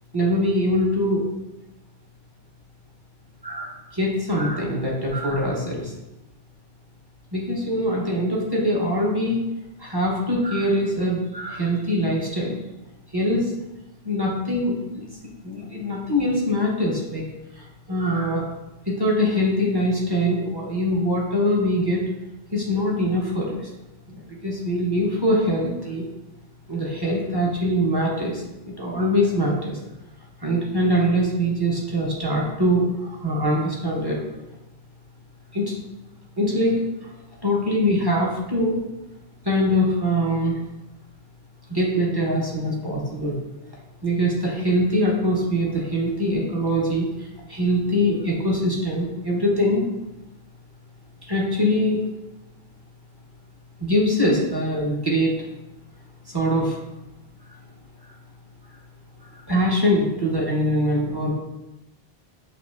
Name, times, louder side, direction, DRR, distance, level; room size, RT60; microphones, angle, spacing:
voice 1, 0.1-1.2 3.4-5.9 7.3-9.4 9.8-12.6 13.1-13.5 14.0-15.1 15.4-17.2 17.5-18.4 18.9-22.1 22.5-23.7 24.1-26.0 26.7-28.4 28.8-29.8 30.4-34.2 35.5-35.7 36.4-37.1 37.4-38.8 39.4-40.6 41.7-43.4 44.0-49.8 51.3-52.0 53.8-55.3 56.3-56.8 58.0-58.1 59.5-61.3, equal, 25° right, -4 dB, 0.8 m, -23 dB
6.1 x 3.0 x 2.4 m, 0.97 s
omnidirectional pair, 1.1 m